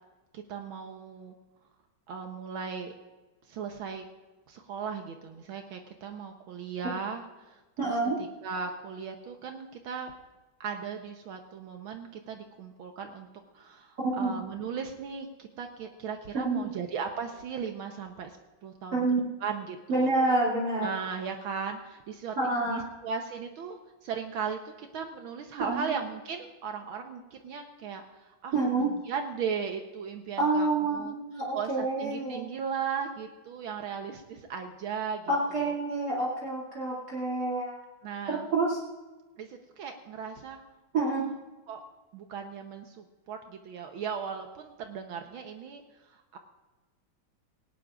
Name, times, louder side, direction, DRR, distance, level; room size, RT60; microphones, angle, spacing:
voice 1, 0.3-1.3 2.1-2.9 3.5-4.0 4.5-10.1 10.6-13.3 13.5-18.4 18.6-19.1 19.4-20.1 20.8-22.4 22.7-28.5 28.8-31.1 31.5-35.7 38.0-38.5 39.4-40.6 41.0-41.3 41.7-41.8 42.1-46.4, right 6 dB, 75° right, 4 dB, 1.7 m, -37 dB
voice 2, 7.8-8.2 14.2-14.3 16.3-16.7 18.9-19.2 19.9-20.9 22.4-22.8 25.6-25.9 28.5-28.9 30.4-32.5 35.3-37.8 38.3-38.8 40.9-41.3, right 2 dB, 45° right, -5 dB, 3.1 m, -28 dB
18.5 x 18.0 x 2.5 m, 1.2 s
omnidirectional pair, 2.3 m